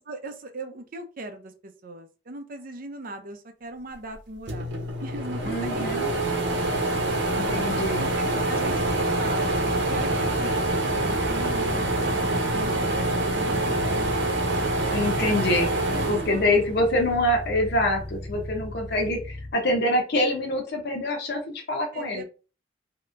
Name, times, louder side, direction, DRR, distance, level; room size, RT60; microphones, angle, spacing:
voice 1, 0.1-6.1 7.6-9.5 9.9-14.1 15.9-16.6 19.0-19.1 21.9-22.2, right 2 dB, 50° right, 6 dB, 0.6 m, -39 dB
sound 1, 4.1-4.2 4.5-17.1 17.5-18.6, right 2 dB, 75° right, 0.8 m, -26 dB
voice 2, 5.4-6.1 7.3-8.1 14.9-15.8 16.1-22.2, left 1 dB, 60° left, 2 dB, 0.8 m, -25 dB
sound 2, 8.6-19.5, left 1 dB, 80° left, 1.2 m, -37 dB
3.3 x 2.8 x 2.5 m, 0.34 s
head